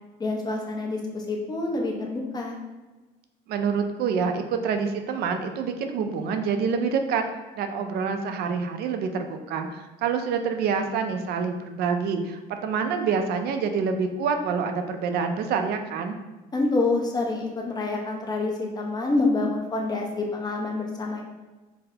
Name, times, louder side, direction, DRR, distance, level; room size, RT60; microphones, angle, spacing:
voice 1, 0.2-2.6 16.5-21.2, left 3 dB, 25° left, 0 dB, 0.6 m, -27 dB
voice 2, 3.5-7.2 7.5-16.2, right 5 dB, 70° right, 6 dB, 0.4 m, -27 dB
4.0 x 2.0 x 2.7 m, 1.2 s
cardioid pair, 110°, 17 cm